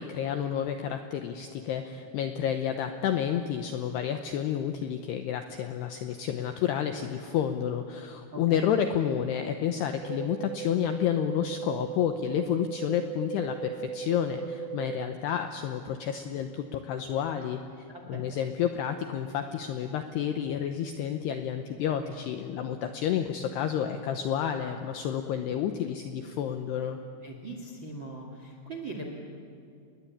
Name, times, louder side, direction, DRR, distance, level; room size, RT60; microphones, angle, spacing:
voice 1, 0.0-17.6 18.1-27.0, left 9 dB, 80° left, 6 dB, 2.4 m, -30 dB
voice 2, 8.3-8.6 17.9-18.3 27.2-29.0, right 2 dB, 45° right, 2 dB, 1.5 m, -41 dB
sound 1, 10.0-15.0, right 10 dB, 75° right, 2.2 m, -38 dB
30.0 x 21.0 x 8.7 m, 2.6 s
omnidirectional pair, 6.0 m